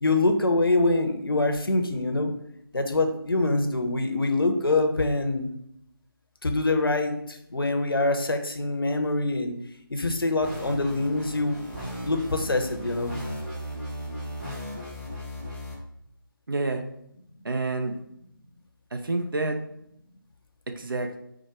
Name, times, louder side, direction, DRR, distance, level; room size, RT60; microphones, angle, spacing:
voice 1, 0.0-2.3 2.7-5.5 6.4-9.5 9.9-11.6 12.0-13.1, left 2 dB, 70° left, 5 dB, 0.7 m, -24 dB
sound 1, 10.4-15.7, equal, ahead, 0.6 m, -36 dB
voice 2, 16.5-16.8 17.4-17.9 18.9-19.6 20.7-21.2, right 2 dB, 65° right, 5 dB, 0.6 m, -28 dB
4.7 x 2.2 x 4.4 m, 0.75 s
figure-of-eight pair, 160°, 12 cm